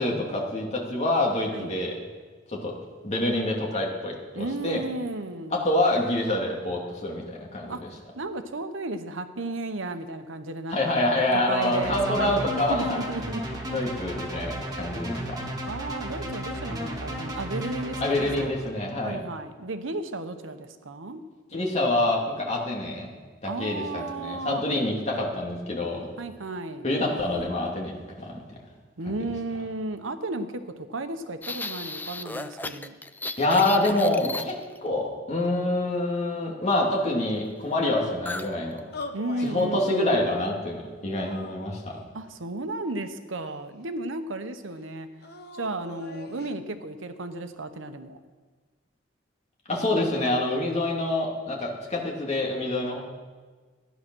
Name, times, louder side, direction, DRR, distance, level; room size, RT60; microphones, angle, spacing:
voice 1, 0.0-2.0 2.5-2.8 3.0-4.8 5.5-7.8 10.7-13.0 13.7-15.4 18.0-19.2 21.5-23.1 23.4-26.1 26.8-28.4 29.1-29.3 33.4-38.8 39.4-42.0 49.7-53.0, left 1 dB, 35° left, -2 dB, 2.4 m, -26 dB
voice 2, 4.3-5.7 7.7-7.8 8.1-12.4 12.7-13.4 15.7-18.6 19.0-21.2 23.4-24.6 26.2-26.9 29.0-32.9 39.1-40.3 42.1-45.1 45.5-48.2, right 2 dB, 85° right, 9 dB, 1.0 m, -34 dB
sound 1, 11.6-18.5, equal, 20° right, 1.7 m, -34 dB
sound 2, 31.4-34.9 38.3-38.5 38.8-39.0 39.5-39.8, left 3 dB, 10° left, 0.4 m, -35 dB
sound 3, 38.9-39.5 39.9-40.5 41.2-42.1 42.8-43.8 45.2-46.6, left 3 dB, 55° left, 1.0 m, -43 dB
15.0 x 10.5 x 6.2 m, 1.4 s
head